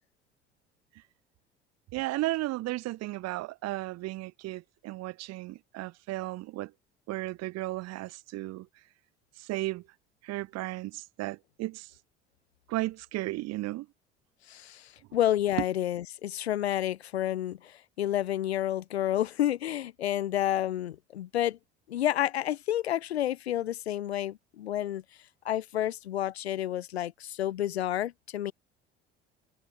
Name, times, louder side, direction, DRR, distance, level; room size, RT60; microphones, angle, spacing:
voice 1, 1.9-6.7 7.1-8.7 9.4-9.8 10.2-11.9 12.7-13.9, right 18 dB, 55° right, 1.7 m, -34 dB
voice 2, 14.5-21.6 21.9-25.0 25.4-28.5, left 12 dB, 80° left, 0.9 m, -30 dB
figure-of-eight pair, 60°, 32 cm